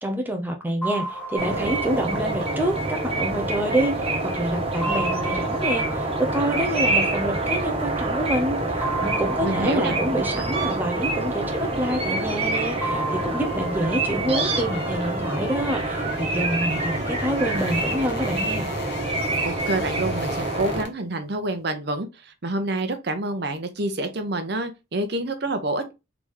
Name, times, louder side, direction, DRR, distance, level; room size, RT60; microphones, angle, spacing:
voice 1, 0.0-18.7, right 1 dB, 10° right, 0.6 m, -27 dB
sound 1, 0.8-4.1 4.8-7.7 8.8-11.9 12.8-15.9, right 2 dB, 10° left, 1.1 m, -35 dB
sound 2, 1.4-20.8, right 2 dB, 30° right, 1.1 m, -26 dB
voice 2, 9.4-10.0 19.4-25.9, right 2 dB, 55° right, 0.8 m, -27 dB
sound 3, 11.1-21.1 21.4-21.6, left 5 dB, 55° left, 0.6 m, -41 dB
3.9 x 3.5 x 3.3 m
head